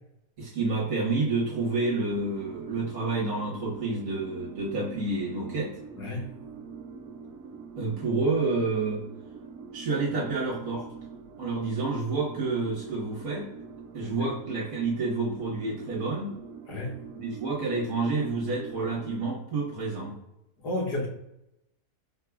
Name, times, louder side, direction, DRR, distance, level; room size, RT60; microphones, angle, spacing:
voice 1, 0.4-5.8 7.8-9.0 9.7-10.8 11.4-13.5 13.9-16.3 17.2-20.2, right 3 dB, 55° right, -4 dB, 1.5 m, -29 dB
sound 1, 1.5-19.2, right 5 dB, 75° right, 1.1 m, -44 dB
voice 2, 6.0-6.3 14.2-14.3 16.6-17.0 20.6-21.1, left 1 dB, 75° left, -1 dB, 1.6 m, -31 dB
4.8 x 3.7 x 2.3 m, 0.85 s
omnidirectional pair, 1.8 m